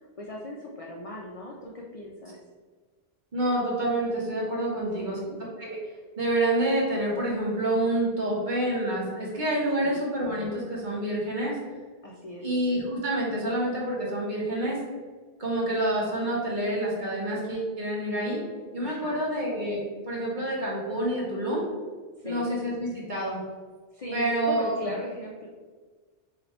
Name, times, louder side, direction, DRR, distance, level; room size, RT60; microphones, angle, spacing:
voice 1, 0.0-2.4 4.8-5.4 9.8-10.0 12.0-12.5 18.8-19.3 22.2-22.5 23.9-25.5, left 1 dB, 50° left, -2 dB, 0.4 m, -38 dB
voice 2, 3.3-5.2 5.6-5.8 6.2-11.6 12.4-14.8 15.4-18.4 18.7-21.7 22.2-23.4 24.1-24.7, right 1 dB, 45° right, -4 dB, 1.2 m, -28 dB
4.0 x 2.8 x 4.3 m, 1.4 s
omnidirectional pair, 1.2 m